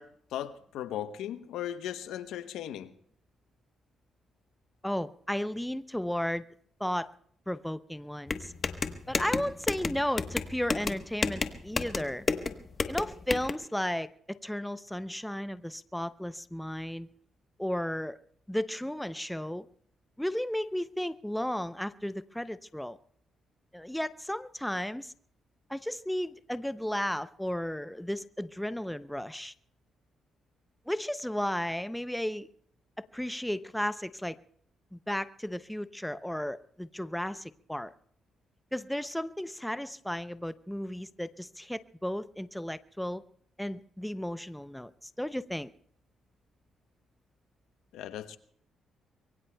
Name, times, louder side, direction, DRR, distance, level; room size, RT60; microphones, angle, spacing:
voice 1, 0.0-2.9 47.9-48.4, left 11 dB, 85° left, 0.9 m, -37 dB
voice 2, 4.8-6.4 6.8-7.1 7.5-8.5 9.1-12.3 12.9-17.1 17.6-18.2 18.5-19.7 20.2-23.0 23.7-25.1 25.7-29.5 30.9-32.5 33.0-34.4 34.9-37.9 38.7-43.2 43.6-44.9 45.2-45.7, left 1 dB, 5° left, 0.5 m, -34 dB
sound 1, 8.3-13.5, left 4 dB, 35° left, 1.1 m, -32 dB
25.0 x 22.5 x 2.3 m
cardioid pair, 90°, 0 cm